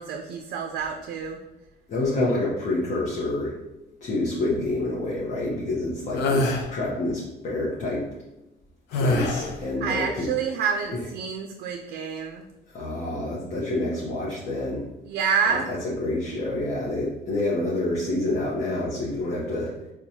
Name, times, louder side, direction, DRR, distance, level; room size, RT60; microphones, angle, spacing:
voice 1, 0.0-1.4 9.8-12.5 15.0-15.7, right 6 dB, 70° right, 3 dB, 0.4 m, -28 dB
voice 2, 1.9-3.6 4.0-8.0 8.9-10.3 10.9-11.0 12.7-14.8 15.7-19.7, left 2 dB, 45° left, -5 dB, 0.8 m, -27 dB
sound 1, 6.1-6.7 8.9-9.6, left 2 dB, 80° left, 0.6 m, -24 dB
4.4 x 2.2 x 2.7 m, 0.95 s
cardioid pair, 110°, 17 cm